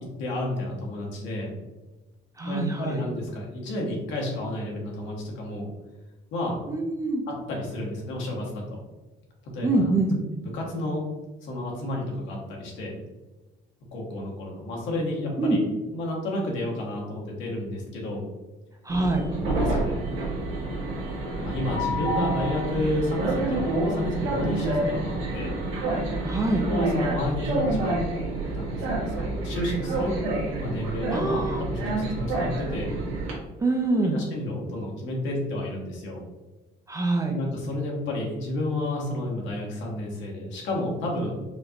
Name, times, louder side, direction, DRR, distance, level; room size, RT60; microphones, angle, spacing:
voice 1, 0.0-1.5 2.4-5.7 6.3-6.7 7.3-8.8 9.4-9.9 10.5-11.0 11.4-12.9 13.9-15.6 15.9-18.2 19.3-20.0 21.4-25.5 26.5-28.0 28.5-30.1 30.5-32.9 33.9-36.2 37.3-41.3, left 1 dB, 70° left, -2 dB, 1.3 m, -31 dB
voice 2, 2.4-3.0 6.7-7.2 9.6-10.2 15.4-15.6 18.9-19.2 26.2-26.7 31.1-31.6 33.6-34.2 36.9-37.4, right 2 dB, 15° right, 2 dB, 0.4 m, -25 dB
Train, 18.9-33.3, right 2 dB, 80° right, 1.4 m, -28 dB
5.0 x 2.6 x 2.8 m, 1.1 s
cardioid pair, 160°, 20 cm